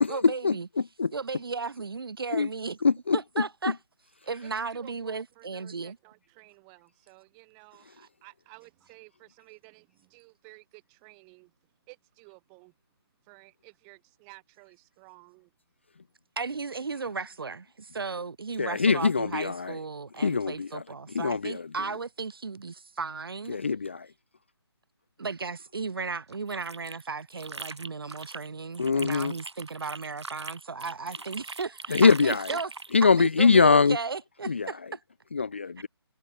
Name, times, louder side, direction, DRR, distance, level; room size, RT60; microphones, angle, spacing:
voice 1, 0.1-0.7 1.1-2.8 3.1-3.8 4.2-6.0 16.4-23.6 25.2-35.0, right 4 dB, 60° right, 3.4 m, -35 dB
voice 2, 2.8-3.2 18.6-19.7 20.2-20.7 21.2-21.6 23.5-24.0 28.8-29.3 31.9-32.4 32.9-34.0 34.5-34.7 35.3-35.9, left 5 dB, 25° left, 0.4 m, -22 dB
voice 3, 4.4-11.5 11.9-12.7 13.2-15.5, right 40 dB or more, 10° right, 5.1 m, -54 dB
sound 1, 26.3-28.5 28.7-32.9, right 3 dB, 85° right, 5.0 m, -41 dB
hypercardioid pair, 175°, 14 cm